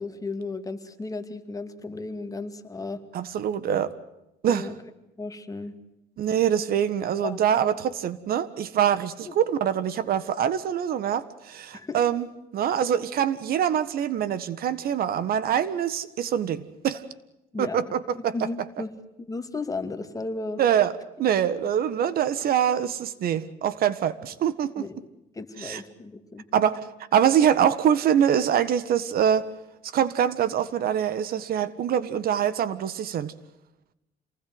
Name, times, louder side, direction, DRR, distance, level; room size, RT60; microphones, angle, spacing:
voice 1, 0.0-3.0 4.4-4.7 5.2-5.8 7.2-7.4 9.2-9.3 11.7-12.0 17.5-17.8 18.1-18.9 19.2-20.6 24.8-25.0 25.3-26.5, left 3 dB, 20° left, 8 dB, 2.4 m, -34 dB
voice 2, 3.1-3.9 4.4-4.7 6.2-12.3 12.5-17.0 17.6-18.3 20.6-24.9 25.6-25.8 26.5-26.8 27.1-29.5 29.9-33.3, right 9 dB, 60° right, 15 dB, 1.6 m, -24 dB
27.5 x 20.0 x 8.0 m, 0.91 s
cardioid pair, 110°, 17 cm